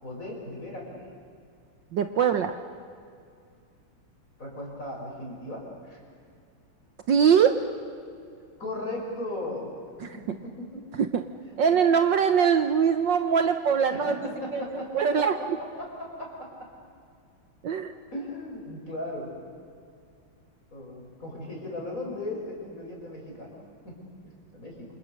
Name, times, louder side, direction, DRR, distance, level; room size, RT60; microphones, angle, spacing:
voice 1, 0.0-1.0 4.4-6.0 8.6-9.7 10.1-10.2 10.6-10.8 11.4-11.8 13.9-15.5 15.8-16.7 18.1-19.4 20.7-24.0 24.2-24.9, left 1 dB, 35° left, -1 dB, 6.5 m, -37 dB
voice 2, 1.9-2.5 7.1-7.5 11.6-14.1 14.5-14.6 14.9-15.3 17.6-17.9, right 7 dB, 60° right, 8 dB, 1.5 m, -22 dB
28.0 x 28.0 x 6.6 m, 2.3 s
omnidirectional pair, 2.4 m